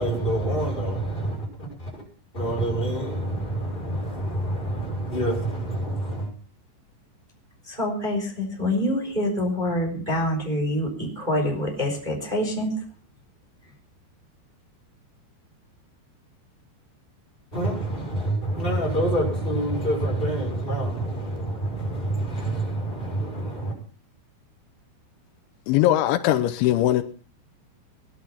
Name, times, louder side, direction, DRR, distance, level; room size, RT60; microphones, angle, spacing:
voice 1, 0.0-2.0 2.3-6.3 17.5-23.8, right 1 dB, 10° left, 5.8 m, -27 dB
voice 2, 7.6-12.7, left 1 dB, 10° right, 3.6 m, -26 dB
voice 3, 25.7-27.0, left 13 dB, 85° left, 3.2 m, -20 dB
19.0 x 11.5 x 5.8 m
omnidirectional pair, 5.3 m